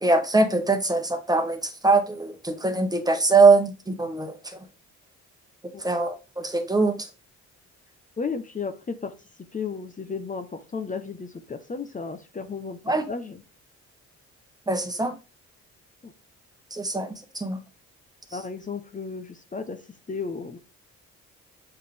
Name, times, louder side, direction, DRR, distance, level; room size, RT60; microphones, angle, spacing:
voice 1, 0.0-4.7 5.8-7.1 12.9-13.1 14.7-15.1 16.7-17.6, right 3 dB, 15° right, 1.2 m, -22 dB
voice 2, 8.2-13.4 16.0-16.1 18.3-20.6, left 5 dB, 25° left, 0.8 m, -34 dB
7.5 x 4.7 x 3.4 m
cardioid pair, 90°, 30 cm